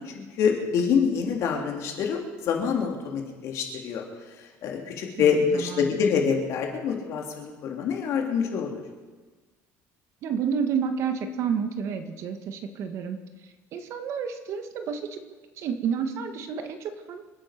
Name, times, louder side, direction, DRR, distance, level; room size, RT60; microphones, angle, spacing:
voice 1, 0.0-4.0 4.4-8.8, left 6 dB, 55° left, 1 dB, 3.3 m, -26 dB
voice 2, 5.2-6.0 10.2-13.2 13.7-15.2 15.6-17.2, right 6 dB, 50° right, 7 dB, 1.7 m, -30 dB
27.0 x 9.0 x 6.0 m, 1.3 s
cardioid pair, 155°, 6 cm